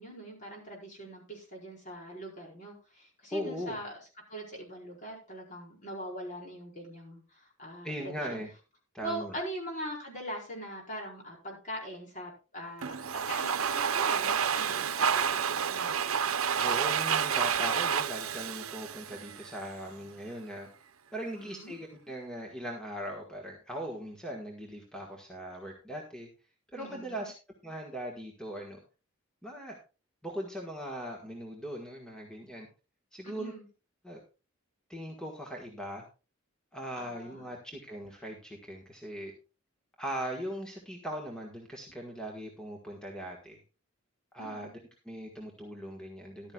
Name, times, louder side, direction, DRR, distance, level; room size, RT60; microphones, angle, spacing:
voice 1, 0.0-4.0 4.3-8.4 9.0-16.0 21.3-21.7 26.7-27.3 33.2-33.6 37.0-37.5 44.4-44.7, equal, 40° left, -1 dB, 4.7 m, -42 dB
voice 2, 3.3-3.8 7.8-8.5 8.9-9.3 16.6-20.7 21.1-26.3 26.7-27.3 27.6-28.8 29.4-29.8 30.2-32.7 33.1-33.5 34.0-34.2 34.9-36.0 36.7-39.3 40.0-43.6 44.3-44.7 45.0-46.5, equal, 5° left, 0 dB, 1.5 m, -39 dB
Domestic sounds home sounds, 12.8-19.7, right 7 dB, 90° right, 0.7 m, -29 dB
14.0 x 12.0 x 2.4 m, 0.32 s
head